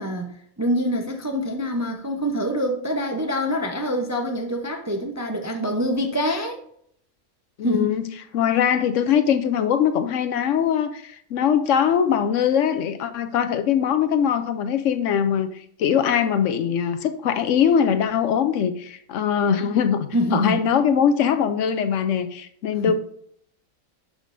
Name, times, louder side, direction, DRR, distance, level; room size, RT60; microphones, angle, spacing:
voice 1, 0.0-6.6 7.6-7.9 20.1-20.6 22.9-23.0, equal, 20° right, 3 dB, 0.5 m, -25 dB
voice 2, 7.6-8.1 8.3-22.9, left 8 dB, 70° left, 10 dB, 0.9 m, -22 dB
11.5 x 5.1 x 2.6 m, 0.67 s
omnidirectional pair, 1.4 m